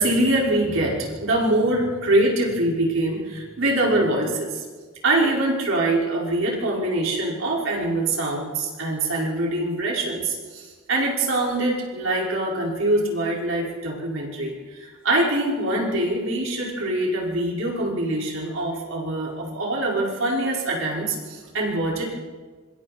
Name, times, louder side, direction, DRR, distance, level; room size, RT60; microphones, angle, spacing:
voice 1, 0.0-4.6 5.0-22.1, right 1 dB, 65° right, -3 dB, 5.2 m, -24 dB
26.0 x 25.5 x 4.4 m, 1.5 s
head